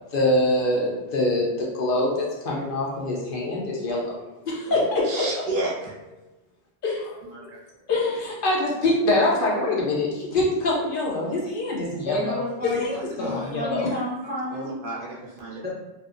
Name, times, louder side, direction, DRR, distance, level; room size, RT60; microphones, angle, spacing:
voice 1, 0.1-5.2 6.8-7.5 7.9-13.9, left 2 dB, 60° left, -3 dB, 0.7 m, -25 dB
voice 2, 4.7-5.9 7.2-7.6 12.6-13.5 14.5-15.6, right 2 dB, 60° right, -5 dB, 0.7 m, -33 dB
voice 3, 12.1-14.7 15.6-15.7, left 1 dB, 15° right, -8 dB, 0.4 m, -31 dB
2.5 x 2.0 x 2.4 m, 1.0 s
omnidirectional pair, 1.1 m